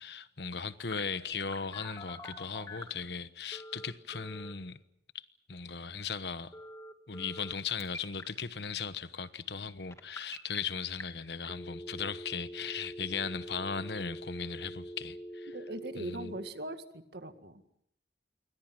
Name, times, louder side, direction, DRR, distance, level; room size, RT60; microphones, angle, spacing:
voice 1, 0.0-4.8 5.1-6.5 7.1-15.5 16.0-16.3, left 5 dB, 75° left, 1.1 m, -38 dB
Telephone, 0.9-3.0 3.5-4.5 6.5-7.5 7.8-8.2 9.9-10.6 11.0-11.1 11.4-16.5, left 1 dB, 15° left, 2.4 m, -45 dB
voice 2, 15.5-17.8, right 1 dB, 70° right, 2.0 m, -41 dB
28.0 x 23.5 x 6.1 m
head